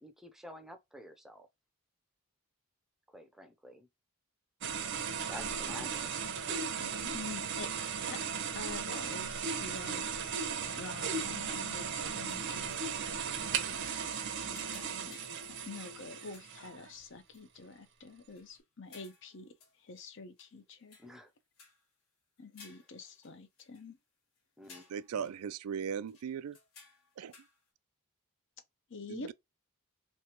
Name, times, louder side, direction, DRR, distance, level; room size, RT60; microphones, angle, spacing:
voice 1, 0.0-1.5 3.1-3.9 5.3-6.1 13.3-13.8 21.0-21.3 24.6-24.9, equal, ahead, 0.6 m, -50 dB
sound 1, 4.6-16.9, right 6 dB, 55° right, 0.7 m, -36 dB
voice 2, 5.7-6.0 6.8-7.7 8.0-8.2 8.5-10.1 10.7-13.1 14.4-14.6 15.1-15.2 15.5-21.0 22.4-24.0 28.9-29.3, left 3 dB, 55° left, 0.7 m, -47 dB
sound 2, 12.3-13.0 13.4-13.6 14.0-15.9 16.2-16.6 17.3-17.6 18.1-20.0 20.4-21.3 21.5-21.9 22.4-23.9 24.4-24.5 24.6-25.5 25.9-27.6, left 4 dB, 75° left, 1.6 m, -59 dB
voice 3, 24.9-26.6 27.2-27.3 29.1-29.3, right 7 dB, 85° right, 0.3 m, -38 dB
3.3 x 3.2 x 2.9 m
head